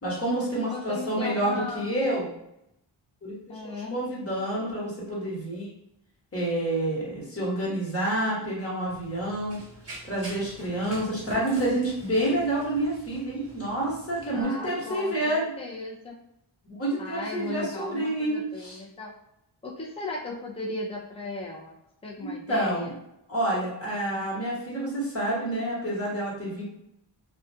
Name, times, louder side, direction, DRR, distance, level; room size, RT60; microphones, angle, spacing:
voice 1, 0.0-2.3 3.2-3.3 3.6-5.7 6.3-9.6 10.0-15.5 16.6-18.8 22.2-22.9 23.3-26.6, right 1 dB, 30° left, -5 dB, 1.2 m, -28 dB
voice 2, 0.6-1.9 3.5-4.1 14.3-16.2 17.0-19.1 19.6-21.8 22.0-23.0, left 2 dB, 15° left, -2 dB, 0.5 m, -36 dB
Run, 8.9-14.4, right 1 dB, 30° right, 1.1 m, -45 dB
2.4 x 2.2 x 2.6 m, 0.82 s
wide cardioid pair, 80°, 47 cm